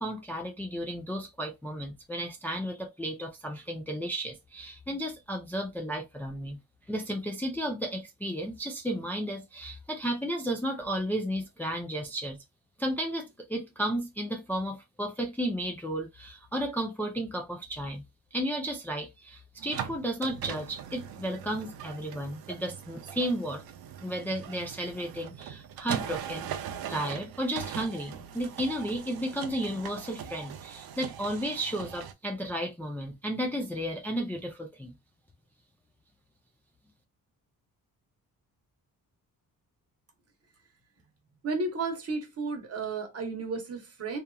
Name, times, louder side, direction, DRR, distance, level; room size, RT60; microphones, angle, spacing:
voice 1, 0.0-6.6 6.9-12.4 12.8-18.0 18.3-23.6 24.0-26.5 26.9-34.9, equal, 5° left, 0.4 m, -33 dB
sound 1, 19.6-32.1, right 9 dB, 80° right, 0.5 m, -40 dB
voice 2, 41.4-44.2, right 3 dB, 40° right, 1.0 m, -33 dB
2.9 x 2.4 x 2.2 m
cardioid pair, 115°, 35 cm